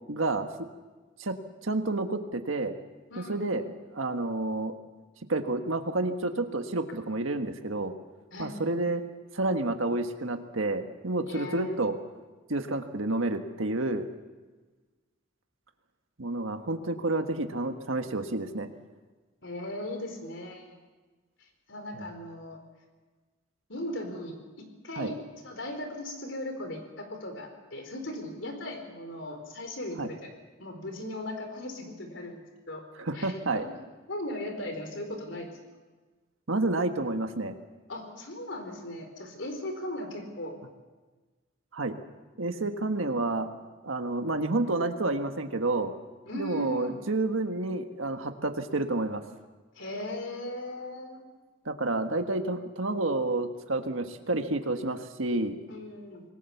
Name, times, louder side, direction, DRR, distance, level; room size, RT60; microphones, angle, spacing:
voice 1, 0.1-0.5 1.2-1.4 1.6-2.7 3.2-3.6 3.9-4.7 5.3-7.9 8.4-9.0 9.3-12.0 12.5-14.1 16.2-18.7 21.9-22.0 25.0-25.1 30.0-30.1 33.0-33.6 36.5-37.6 41.7-41.9 42.4-43.5 43.8-45.9 46.3-49.2 51.6-55.6, right 2 dB, 80° right, 6 dB, 1.6 m, -29 dB
voice 2, 3.1-3.7 8.3-8.5 11.3-11.8 19.4-20.6 21.7-22.6 23.7-24.3 24.8-25.1 25.4-30.3 30.6-32.4 32.7-32.8 33.1-33.3 33.6-33.7 34.1-35.5 37.9-40.6 46.3-47.0 49.7-51.2 55.7-56.2, left 1 dB, 65° left, 5 dB, 4.5 m, -37 dB
26.0 x 20.0 x 7.1 m, 1.3 s
head